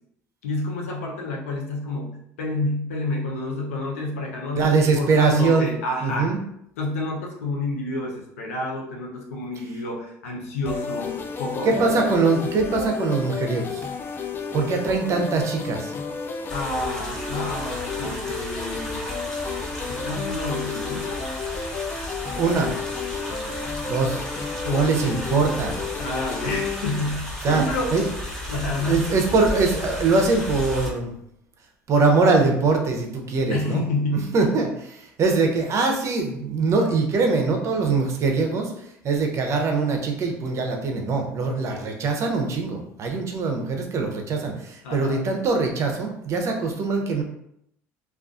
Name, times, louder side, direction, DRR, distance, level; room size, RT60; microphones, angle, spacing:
voice 1, 0.4-6.3 6.8-12.0 16.5-19.1 19.9-21.2 24.6-24.9 26.0-28.0 28.5-29.1 33.5-34.4 44.8-45.3, left 2 dB, 90° left, -1 dB, 0.6 m, -29 dB
voice 2, 4.6-5.7 6.0-6.4 11.6-13.8 14.5-15.9 22.3-22.7 23.8-24.2 24.7-25.8 27.4-27.6 27.9-28.0 28.4-31.1 31.9-33.8 34.1-47.2, right 4 dB, 45° right, 3 dB, 0.6 m, -22 dB
sound 1, 10.6-26.8, left 5 dB, 30° left, 0.3 m, -32 dB
sound 2, 16.5-30.9, left 1 dB, 10° left, 0.9 m, -34 dB
2.3 x 2.3 x 2.4 m, 0.75 s
hypercardioid pair, 80°, 7 cm